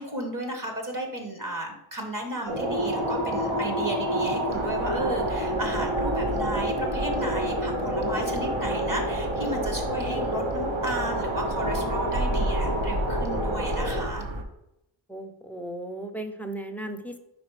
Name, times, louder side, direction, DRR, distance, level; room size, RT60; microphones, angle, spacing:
voice 1, 0.0-14.2, right 1 dB, 40° right, 3 dB, 1.2 m, -34 dB
sound 1, 2.5-14.0, equal, 90° right, 1.6 m, -28 dB
sound 2, 4.5-14.4, right 2 dB, 65° right, 0.9 m, -33 dB
voice 2, 15.1-17.2, right 1 dB, 5° left, 5 dB, 0.4 m, -36 dB
5.1 x 4.5 x 4.7 m, 0.87 s
wide cardioid pair, 125°, 48 cm